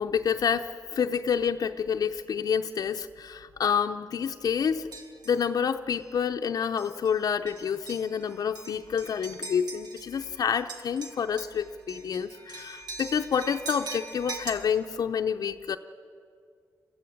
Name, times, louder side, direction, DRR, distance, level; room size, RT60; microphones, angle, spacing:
voice 1, 0.0-4.9 5.3-15.8, left 7 dB, 65° left, 7 dB, 0.6 m, -28 dB
sound 1, 4.9-5.4 5.9-6.1 6.8-7.1 7.5-10.3 10.5-14.5, right 3 dB, 75° right, 2.2 m, -42 dB
22.0 x 14.5 x 8.8 m, 2.2 s
cardioid pair, 85°, 7 cm